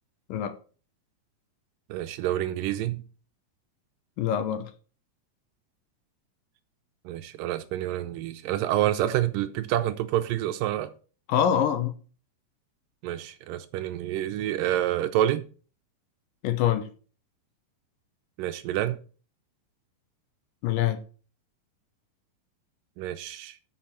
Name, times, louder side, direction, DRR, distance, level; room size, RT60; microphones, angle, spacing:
voice 1, 1.9-3.0 7.1-10.9 13.0-15.4 18.4-19.0 23.0-23.6, right 13 dB, 80° right, 2.2 m, -28 dB
voice 2, 4.2-4.7 11.3-11.9 16.4-16.9 20.6-21.0, left 10 dB, 80° left, 2.4 m, -25 dB
7.7 x 6.7 x 5.6 m
omnidirectional pair, 4.2 m